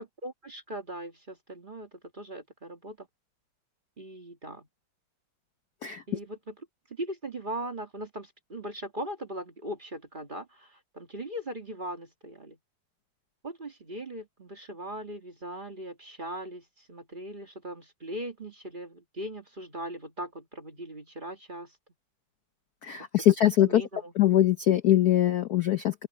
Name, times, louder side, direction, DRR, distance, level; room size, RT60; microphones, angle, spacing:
voice 1, 0.0-3.1 4.0-4.7 6.1-12.6 13.4-21.8 23.0-24.1, right 1 dB, 25° right, 1.7 m, -39 dB
voice 2, 22.8-23.8 24.2-25.9, left 12 dB, 60° left, 1.0 m, -22 dB
open air
omnidirectional pair, 2.4 m